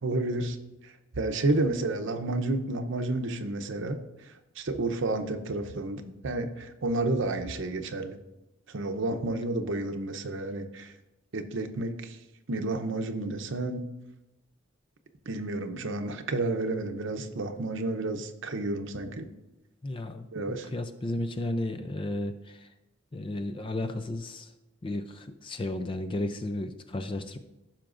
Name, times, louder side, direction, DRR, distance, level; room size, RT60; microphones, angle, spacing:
voice 1, 0.0-0.6 1.2-4.0 4.6-8.2 8.7-10.9 11.3-12.2 12.5-13.9 15.3-19.3 20.3-20.7, right 2 dB, 65° right, 6 dB, 0.7 m, -30 dB
voice 2, 19.8-22.6 23.1-24.5 24.8-27.4, left 1 dB, 25° left, 9 dB, 0.4 m, -33 dB
15.5 x 5.9 x 2.5 m, 0.94 s
head